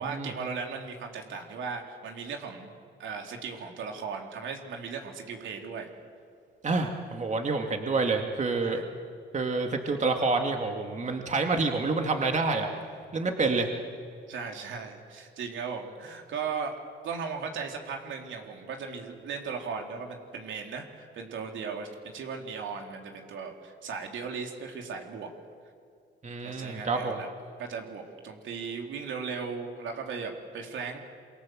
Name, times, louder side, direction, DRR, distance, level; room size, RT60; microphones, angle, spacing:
voice 1, 0.0-5.9 8.6-8.9 14.3-16.8 17.0-25.3 26.4-27.3 27.6-31.0, right 5 dB, 75° right, 2 dB, 3.5 m, -37 dB
voice 2, 6.6-8.8 9.3-12.7 13.1-13.7 26.2-27.2, right 3 dB, 35° right, 4 dB, 2.3 m, -28 dB
27.0 x 24.0 x 7.7 m, 2.2 s
cardioid pair, 90°, 20 cm